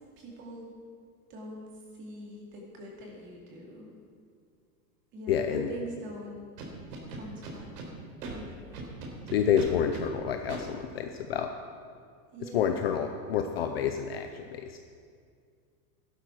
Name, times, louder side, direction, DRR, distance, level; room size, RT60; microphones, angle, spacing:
voice 1, 0.2-0.7 1.3-1.7 1.9-3.9 5.1-6.5 7.1-7.7 8.3-8.9 12.3-12.9, right 1 dB, 25° right, -2 dB, 2.5 m, -43 dB
voice 2, 5.3-5.7 9.3-11.5 12.4-14.8, left 8 dB, 40° left, 6 dB, 0.5 m, -29 dB
Scratching (performance technique), 6.6-7.9 8.2-8.3 8.7-10.0 10.5-10.6, right 3 dB, 70° right, 3.5 m, -39 dB
16.0 x 12.0 x 4.7 m, 2.2 s
supercardioid pair, 180°, 49 cm